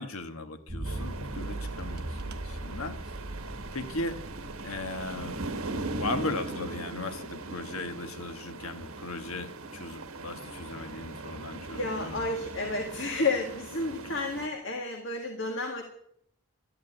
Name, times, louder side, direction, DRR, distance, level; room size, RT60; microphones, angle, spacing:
voice 1, 0.0-3.0 3.7-4.2 4.6-5.4 5.9-12.2 14.0-14.1, left 2 dB, 75° left, 8 dB, 1.3 m, -37 dB
sound 1, 0.7-6.2, right 1 dB, 45° right, 1.2 m, -39 dB
sound 2, 0.8-14.5, right 3 dB, 70° right, 1.4 m, -40 dB
voice 2, 11.8-15.8, left 2 dB, 55° left, 2 dB, 1.8 m, -31 dB
13.0 x 11.0 x 9.9 m, 0.71 s
head